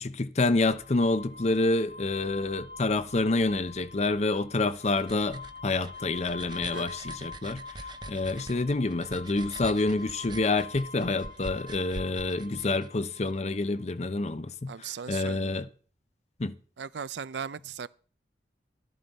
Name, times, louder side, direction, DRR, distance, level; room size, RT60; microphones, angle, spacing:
voice 1, 0.0-15.7 16.4-16.6, left 2 dB, 40° left, 0.6 m, -28 dB
sound 1, 0.6-14.0, left 3 dB, 80° left, 1.7 m, -46 dB
sound 2, 4.4-13.3, right 2 dB, 25° right, 0.5 m, -45 dB
voice 2, 14.7-15.6 16.8-17.9, right 7 dB, 80° right, 0.5 m, -38 dB
12.5 x 11.0 x 4.1 m
head